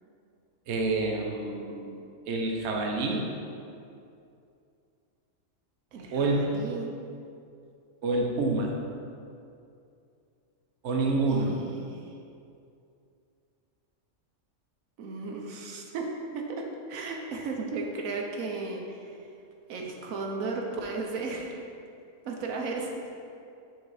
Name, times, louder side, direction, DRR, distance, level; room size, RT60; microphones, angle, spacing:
voice 1, 0.7-2.0 2.3-3.2 6.1-6.5 8.0-8.7 10.8-11.5, right 3 dB, 60° right, 0 dB, 1.0 m, -27 dB
voice 2, 5.9-6.9 11.2-12.1 15.0-19.3 19.7-21.5 22.3-23.1, right 3 dB, 80° right, 1 dB, 1.2 m, -35 dB
6.6 x 4.1 x 4.7 m, 2.5 s
omnidirectional pair, 1.4 m